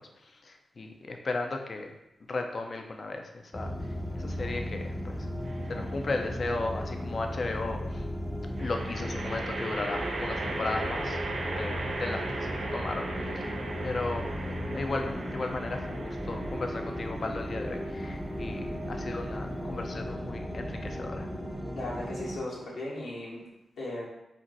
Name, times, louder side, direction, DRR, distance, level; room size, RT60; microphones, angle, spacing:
voice 1, 0.3-1.9 2.3-3.7 4.1-5.3 5.7-8.0 8.6-13.0 13.3-21.3, left 3 dB, 55° left, 4 dB, 0.4 m, -35 dB
sound 1, 3.5-22.4, equal, ahead, 0.5 m, -36 dB
sound 2, 5.4-6.0 8.6-19.9, right 2 dB, 65° right, 0.4 m, -38 dB
voice 2, 21.7-23.4 23.8-24.0, left 2 dB, 85° left, -7 dB, 1.0 m, -36 dB
2.5 x 2.1 x 4.0 m, 0.91 s
supercardioid pair, 40°, 0 cm